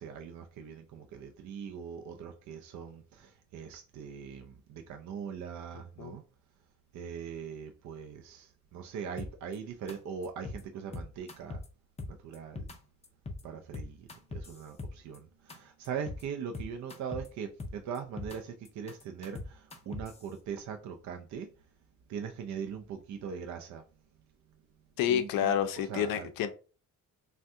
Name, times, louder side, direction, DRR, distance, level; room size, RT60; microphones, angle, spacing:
voice 1, 0.0-6.2 6.9-11.6 12.1-12.6 13.4-21.5 22.1-23.8 25.1-25.5 25.9-26.3, right 7 dB, 55° right, 0.4 m, -41 dB
sound 1, 9.2-9.6 9.9-10.0 10.2-10.6 10.9-11.7 12.0-12.8 13.0-13.4 13.7-15.2 15.5-15.6 15.8-16.2 16.5-17.3 17.6-18.4 18.7-20.2, left 2 dB, 20° left, 0.4 m, -40 dB
voice 2, 25.0-26.5, left 9 dB, 80° left, 0.5 m, -29 dB
3.4 x 2.2 x 2.6 m
cardioid pair, 135°, 34 cm